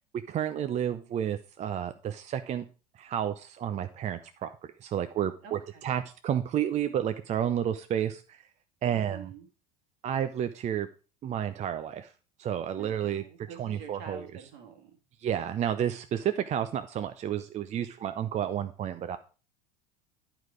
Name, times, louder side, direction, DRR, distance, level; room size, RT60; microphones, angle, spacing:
voice 1, 0.3-2.6 3.0-4.5 4.8-8.4 8.8-9.3 10.0-10.9 11.2-12.1 12.4-13.2 13.6-14.2 15.2-19.2, right 9 dB, 35° right, 9 dB, 0.5 m, -31 dB
voice 2, 5.4-6.1 8.9-9.5 12.8-15.0, right 7 dB, 65° right, 5 dB, 1.9 m, -47 dB
9.1 x 4.9 x 4.9 m, 0.35 s
hypercardioid pair, 80°, 21 cm